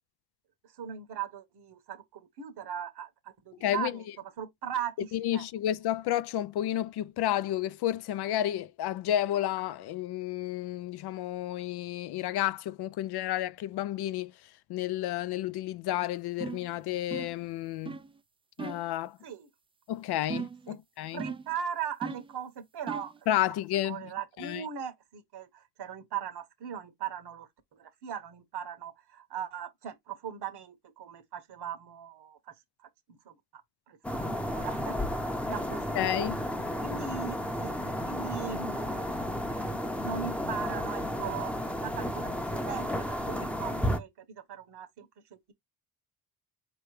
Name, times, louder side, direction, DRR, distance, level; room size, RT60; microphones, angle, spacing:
voice 1, 0.8-4.0 4.4-5.4 19.2-19.5 20.7-20.8 21.1-23.1 23.5-23.6 23.8-32.4 33.1-33.3 33.9-35.0 35.5-36.0 36.8-39.5 40.0-45.5, right 8 dB, 65° right, 1.3 m, -39 dB
voice 2, 3.6-4.0 5.1-14.3 14.7-18.0 18.6-19.2 19.9-21.2 23.3-24.0 24.4-24.6 36.0-36.4, left 12 dB, 65° left, 0.5 m, -31 dB
sound 1, 16.4-16.7 17.1-17.4 17.9-18.1 18.6-18.9 20.3-20.7 21.2-21.6 22.0-22.4 22.9-23.2, right 5 dB, 15° right, 0.3 m, -38 dB
sound 2, 34.0-44.0, equal, 5° left, 0.7 m, -32 dB
4.5 x 3.1 x 3.2 m
cardioid pair, 95°, 42 cm